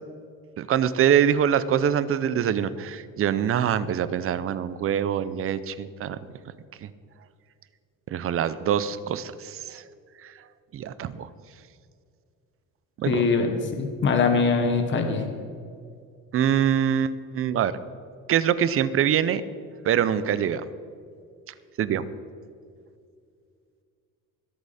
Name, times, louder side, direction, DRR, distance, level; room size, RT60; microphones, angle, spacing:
voice 1, 0.6-6.2 6.8-6.9 8.1-9.8 10.2-10.3 10.7-11.3 13.0-13.3 16.3-17.8 18.3-19.4 19.8-20.7 21.8-22.1, right 9 dB, 45° right, 15 dB, 0.6 m, -24 dB
voice 2, 13.1-15.3, left 4 dB, 35° left, 5 dB, 1.3 m, -23 dB
21.5 x 8.4 x 4.2 m, 2.3 s
cardioid pair, 165°, 32 cm